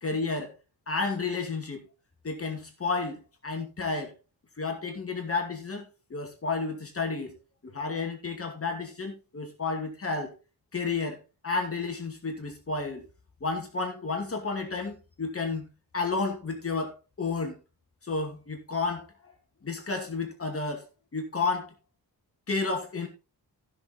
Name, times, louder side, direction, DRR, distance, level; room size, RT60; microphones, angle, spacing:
voice 1, 0.0-0.5 0.9-1.8 2.2-4.1 4.6-7.3 7.6-10.3 10.7-11.2 11.4-13.0 13.4-15.7 15.9-17.6 18.0-19.3 19.6-20.8 21.1-21.7 22.5-23.1, left 4 dB, 35° left, 3 dB, 2.4 m, -31 dB
14.5 x 6.5 x 4.0 m, 0.31 s
wide cardioid pair, 145°, 39 cm